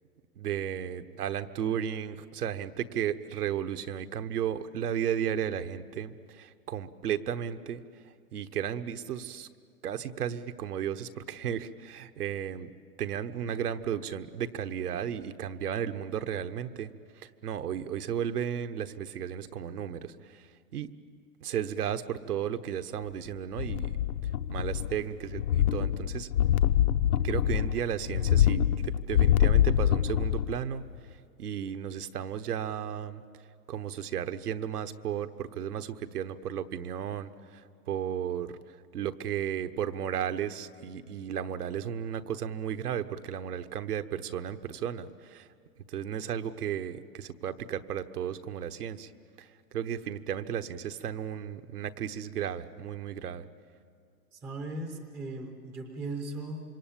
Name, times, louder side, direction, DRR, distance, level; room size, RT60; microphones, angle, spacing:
voice 1, 0.4-7.8 8.3-9.5 9.8-12.7 13.0-16.9 17.2-20.4 20.7-20.9 21.4-23.9 24.5-26.3 27.2-30.8 31.4-33.2 33.7-37.6 37.9-38.6 38.9-45.5 45.9-49.1 49.4-49.5 49.7-53.4, right 9 dB, 70° right, 9 dB, 1.3 m, -34 dB
sound 1, 23.5-25.0 25.3-30.6 30.9-31.0, left 11 dB, 65° left, 0.9 m, -25 dB
voice 2, 54.3-56.6, right 2 dB, 5° right, 4 dB, 0.6 m, -38 dB
26.5 x 23.5 x 8.9 m, 2.3 s
hypercardioid pair, 160°, 48 cm